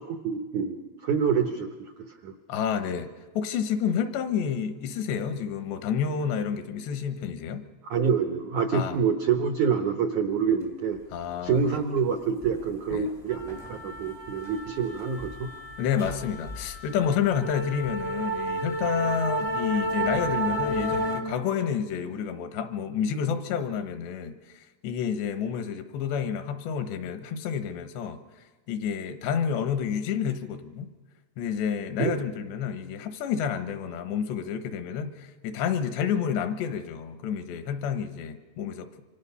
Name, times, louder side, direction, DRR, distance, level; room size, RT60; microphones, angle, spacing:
voice 1, 0.1-1.9 2.2-2.3 7.8-11.0 11.4-15.5 32.0-32.2, right 6 dB, 80° right, 1.7 m, -27 dB
voice 2, 2.5-3.1 3.3-7.7 8.7-9.0 11.1-11.8 12.9-13.1 15.8-28.2 28.7-30.9 31.4-38.9, left 7 dB, 80° left, 3.4 m, -29 dB
sound 1, 12.4-12.6 12.9-21.2, right 1 dB, 60° left, 0.3 m, -32 dB
26.5 x 25.0 x 5.6 m
omnidirectional pair, 4.9 m